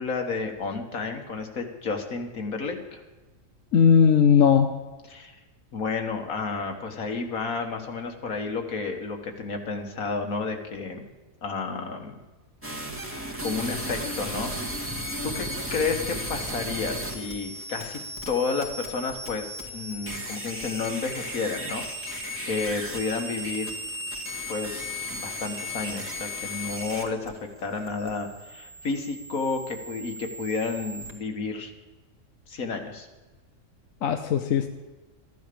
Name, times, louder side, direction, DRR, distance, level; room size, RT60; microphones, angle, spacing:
voice 1, 0.0-3.0 5.1-5.4 5.7-11.1 11.4-12.2 13.4-14.9 15.2-23.7 24.5-27.3 27.6-31.7 32.5-33.1, left 4 dB, 90° left, 4 dB, 2.1 m, -31 dB
voice 2, 3.7-4.7 34.0-34.7, left 7 dB, 75° left, 6 dB, 1.2 m, -18 dB
sound 1, 12.6-31.1, equal, 10° right, 2.0 m, -35 dB
14.5 x 11.0 x 6.9 m, 1.2 s
omnidirectional pair, 1.4 m